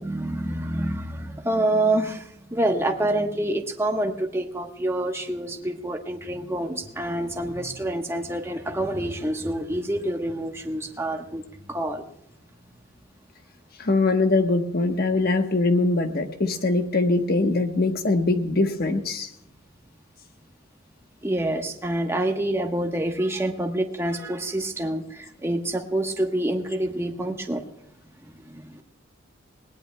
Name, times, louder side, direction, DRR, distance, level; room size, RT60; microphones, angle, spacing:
voice 1, 0.0-11.4 11.7-12.0 21.2-27.6 28.5-28.6, right 1 dB, 10° right, 3 dB, 1.1 m, -27 dB
voice 2, 13.8-19.3, left 2 dB, 45° left, 6 dB, 1.2 m, -22 dB
20.0 x 19.0 x 2.3 m, 0.78 s
head